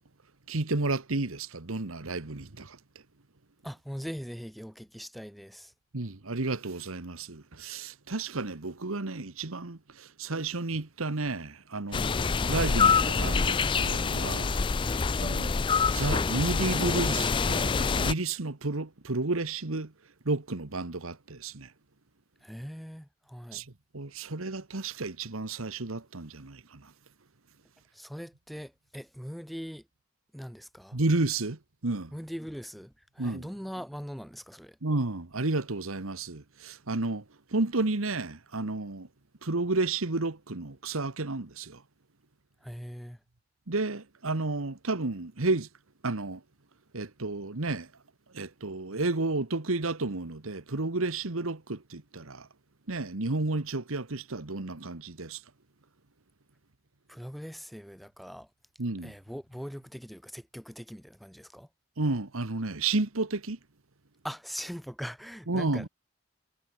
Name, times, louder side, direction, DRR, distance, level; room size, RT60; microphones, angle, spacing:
voice 1, 0.5-2.8 5.9-14.6 15.2-15.6 15.9-19.9 20.2-21.7 23.5-23.7 23.9-26.9 30.9-32.1 33.2-33.5 34.8-37.2 37.5-39.1 39.4-41.8 43.7-45.7 46.0-46.4 46.9-47.9 48.3-52.5 52.9-55.4 58.8-59.1 62.0-63.6 65.5-65.9, right 3 dB, 80° right, 1.5 m, -31 dB
voice 2, 3.6-5.7 22.4-23.6 27.9-29.9 30.3-31.0 32.1-34.8 42.6-43.2 57.1-58.5 59.0-61.7 64.2-65.9, equal, ahead, 2.3 m, -41 dB
sound 1, 11.9-18.1, left 5 dB, 25° left, 0.3 m, -26 dB
head